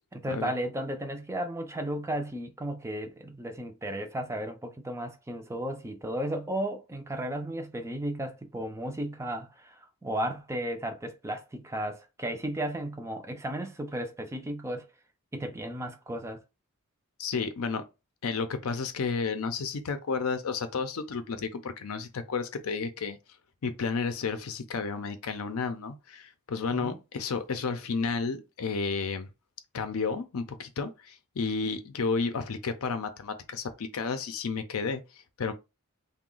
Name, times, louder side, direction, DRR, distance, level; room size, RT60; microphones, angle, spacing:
voice 1, 0.1-14.9 15.3-16.4 26.7-27.0, right 1 dB, 10° right, 0.4 m, -34 dB
voice 2, 17.2-17.8 18.2-23.2 23.6-29.3 29.7-35.5, left 4 dB, 70° left, 0.5 m, -32 dB
2.9 x 2.1 x 3.8 m
head